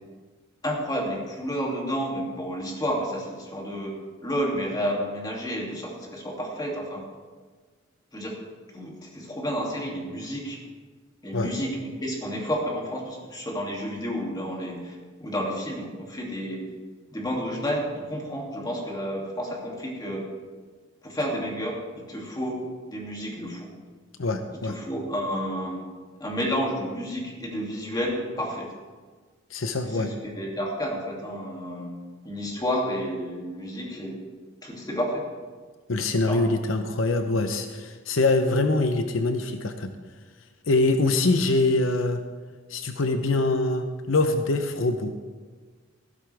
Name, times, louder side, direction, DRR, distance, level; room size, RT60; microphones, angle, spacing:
voice 1, 0.6-4.0 4.2-7.0 8.1-8.3 8.7-10.6 11.2-16.6 17.1-20.3 21.0-21.8 22.1-22.6 22.9-23.7 24.6-25.8 26.2-28.7 29.8-31.9 32.2-34.2 34.6-35.2 36.2-36.4, equal, 20° left, -2 dB, 2.6 m, -30 dB
voice 2, 24.2-24.8 29.5-30.1 35.9-39.9 40.7-42.2 42.7-45.1, left 2 dB, 80° left, 7 dB, 0.8 m, -24 dB
15.0 x 12.5 x 3.4 m, 1.5 s
head